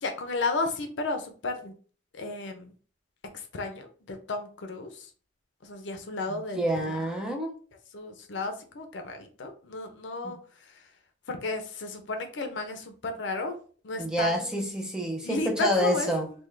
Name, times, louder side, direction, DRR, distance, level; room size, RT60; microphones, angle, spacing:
voice 1, 0.0-1.7 2.1-2.7 3.3-5.1 5.6-6.9 7.9-10.4 11.3-13.6 13.8-14.8 15.2-16.3, left 3 dB, 65° left, 6 dB, 0.6 m, -33 dB
voice 2, 6.3-7.5 10.2-10.4 14.0-16.3, equal, 5° right, 1 dB, 0.5 m, -28 dB
3.5 x 2.2 x 3.2 m, 0.41 s
head